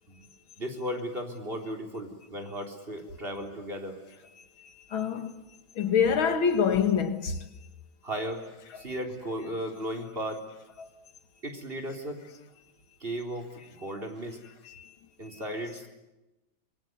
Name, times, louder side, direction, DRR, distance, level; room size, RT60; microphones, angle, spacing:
voice 1, 0.6-4.0 8.0-8.4 8.7-10.4 11.4-12.2 13.0-14.4 15.2-15.9, equal, 25° right, 4.1 m, -35 dB
voice 2, 4.6-5.3 5.8-7.4 10.8-10.9 14.7-14.9, left 7 dB, 90° left, 2.6 m, -26 dB
26.0 x 22.5 x 9.5 m
omnidirectional pair, 2.2 m